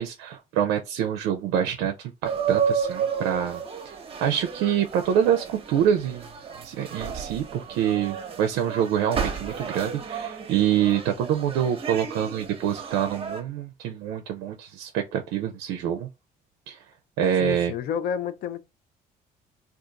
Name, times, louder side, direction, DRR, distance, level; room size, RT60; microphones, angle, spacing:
voice 1, 0.0-3.6 4.2-6.3 6.6-16.1 16.7-16.8 17.2-17.7, right 9 dB, 90° right, 0.4 m, -26 dB
sound 1, 2.2-13.4, right 7 dB, 35° right, 0.8 m, -32 dB
voice 2, 17.4-18.6, left 8 dB, 65° left, 0.5 m, -30 dB
2.4 x 2.4 x 3.8 m
cardioid pair, 110°, 17 cm